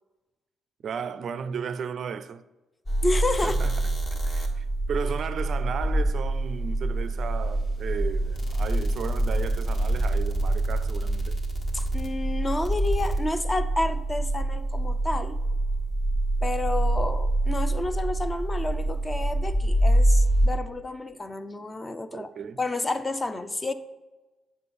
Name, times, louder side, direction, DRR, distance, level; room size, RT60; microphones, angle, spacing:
voice 1, 0.8-2.4 3.4-3.7 4.3-11.4 22.1-22.6, right 7 dB, 60° right, 0.4 m, -34 dB
sound 1, 2.9-20.5, right 1 dB, 40° left, 1.5 m, -25 dB
voice 2, 3.0-3.6 11.7-15.4 16.4-22.3 22.6-23.7, left 2 dB, 20° left, 0.5 m, -30 dB
7.5 x 5.6 x 4.1 m
cardioid pair, 90°, 0 cm